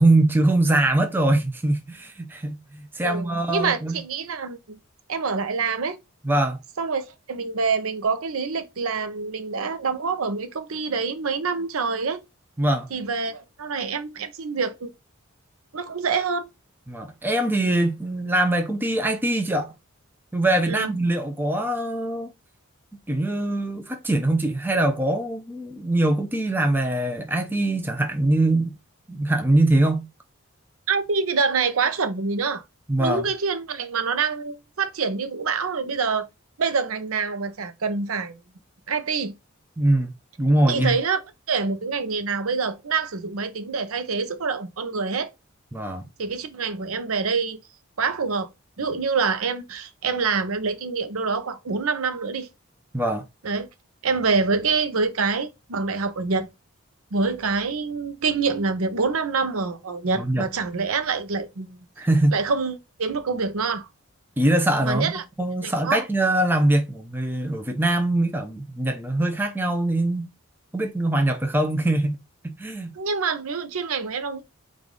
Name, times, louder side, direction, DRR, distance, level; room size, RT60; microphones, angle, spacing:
voice 1, 0.0-3.9 6.2-6.6 12.6-12.9 16.9-19.7 20.3-22.3 23.1-28.8 29.1-30.1 32.9-33.3 39.8-40.1 40.4-41.0 45.7-46.1 52.9-53.3 60.2-60.5 62.0-62.4 64.4-65.1 65.4-70.3 70.7-72.9, right 1 dB, 10° right, 0.5 m, -22 dB
voice 2, 3.0-4.8 5.1-6.0 6.8-12.2 12.9-14.9 15.7-16.5 20.7-20.9 30.9-32.6 33.0-36.3 36.6-38.4 38.9-39.3 40.7-41.2 41.5-45.3 46.2-47.6 48.0-48.5 48.8-52.5 53.4-53.7 54.0-56.5 57.1-61.8 62.3-63.9 64.8-65.2 65.6-66.0 73.0-74.4, right 4 dB, 80° right, 0.7 m, -26 dB
4.8 x 2.6 x 3.8 m
head